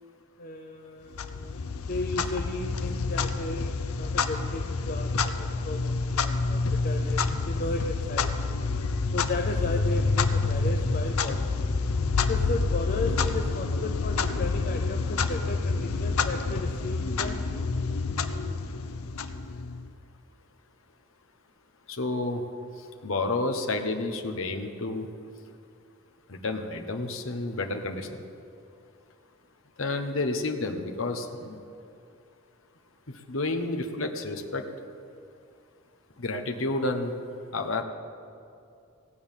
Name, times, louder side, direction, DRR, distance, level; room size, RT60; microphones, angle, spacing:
voice 1, 0.4-1.6 1.9-7.2 7.5-8.3 9.1-11.6 12.3-17.4, left 2 dB, 40° left, 4 dB, 0.7 m, -35 dB
Clock, 1.1-19.9, left 4 dB, 80° left, 0.7 m, -28 dB
voice 2, 21.9-22.4 23.0-25.1 26.3-28.2 29.8-31.6 33.3-34.6 36.2-37.1 37.5-37.8, left 2 dB, 65° left, 4 dB, 1.1 m, -30 dB
17.0 x 8.6 x 7.3 m, 2.5 s
head